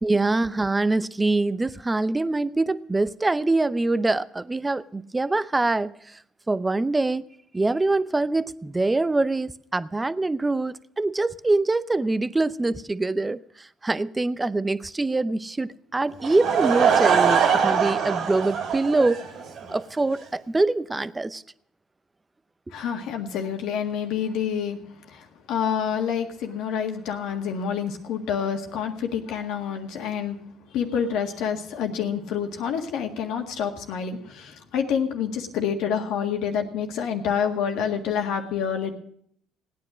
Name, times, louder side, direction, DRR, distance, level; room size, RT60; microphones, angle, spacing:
voice 1, 0.0-6.2 6.5-7.2 7.5-19.2 19.7-21.4, right 2 dB, 20° right, 0.6 m, -24 dB
Laughter / Crowd, 16.2-19.7, right 7 dB, 65° right, 2.4 m, -22 dB
voice 2, 22.7-24.8 25.1-30.4 30.7-39.0, left 7 dB, 75° left, 1.8 m, -28 dB
17.0 x 9.6 x 6.2 m
supercardioid pair, 70°, 0 cm